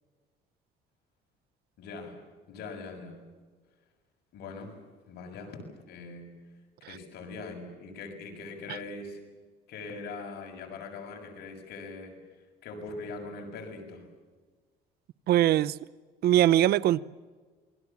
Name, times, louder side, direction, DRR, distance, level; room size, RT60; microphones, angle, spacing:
voice 1, 1.8-2.2 2.5-3.2 4.3-4.8 5.1-6.3 6.8-9.2 9.7-14.1, left 3 dB, 75° left, 7.0 m, -42 dB
voice 2, 15.3-15.8 16.2-17.0, right 12 dB, 70° right, 0.7 m, -21 dB
27.5 x 22.0 x 7.3 m
cardioid pair, 110°, 17 cm